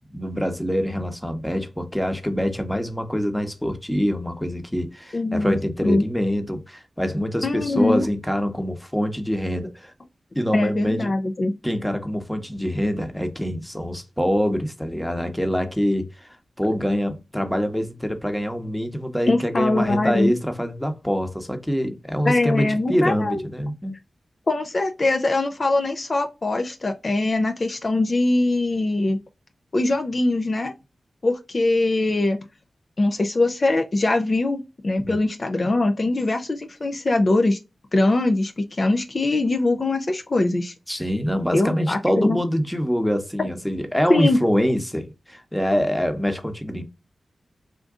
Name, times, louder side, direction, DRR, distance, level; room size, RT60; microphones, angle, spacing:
voice 1, 0.1-9.9 10.3-11.1 11.6-23.9 35.0-35.2 40.9-46.8, equal, 5° left, 1.0 m, -25 dB
voice 2, 5.1-6.1 7.4-8.1 10.5-11.5 19.3-20.3 22.3-23.4 24.5-29.2 29.7-30.7 31.2-32.4 33.0-37.6 37.9-40.7 41.5-42.4 44.1-44.4, left 2 dB, 50° left, 0.5 m, -22 dB
3.6 x 2.5 x 3.6 m
cardioid pair, 45°, 0 cm